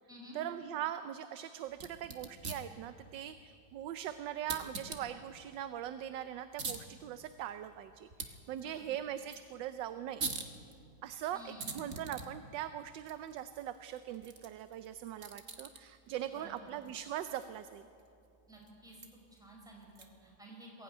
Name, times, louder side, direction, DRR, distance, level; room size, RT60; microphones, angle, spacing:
voice 1, 0.3-10.2 11.0-17.9, right 11 dB, 75° right, 11 dB, 1.3 m, -41 dB
sound 1, 1.7-20.4, right 4 dB, 45° right, 1.7 m, -47 dB
voice 2, 11.3-11.9 16.3-16.5 18.5-19.0 19.4-20.8, right 1 dB, ahead, -2 dB, 4.9 m, -52 dB
21.5 x 16.0 x 9.4 m, 2.6 s
omnidirectional pair, 2.1 m